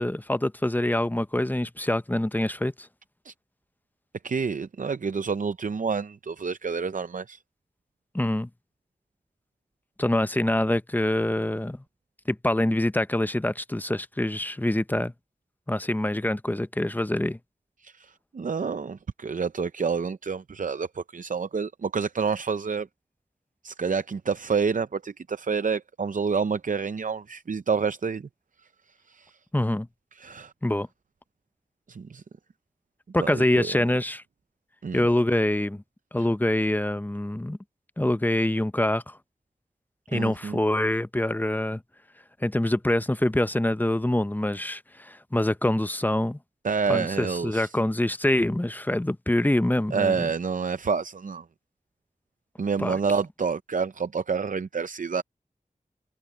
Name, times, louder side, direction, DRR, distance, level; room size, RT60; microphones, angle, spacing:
voice 1, 0.0-2.9 8.1-8.5 10.0-11.8 12.3-15.1 15.7-17.4 29.5-29.9 30.6-30.9 33.1-34.2 34.9-35.8 36.1-37.6 38.0-39.2 40.1-41.8 42.4-46.4 46.9-50.2 52.8-53.0, left 1 dB, 10° left, 0.6 m, -25 dB
voice 2, 4.2-7.4 17.8-22.9 23.6-28.3 29.1-29.4 30.1-30.5 31.9-32.2 33.2-33.7 34.8-35.1 36.2-36.3 40.1-40.6 46.6-47.7 49.9-51.4 52.6-55.2, right 5 dB, 65° right, 0.5 m, -28 dB
wide cardioid pair, 50°, 14 cm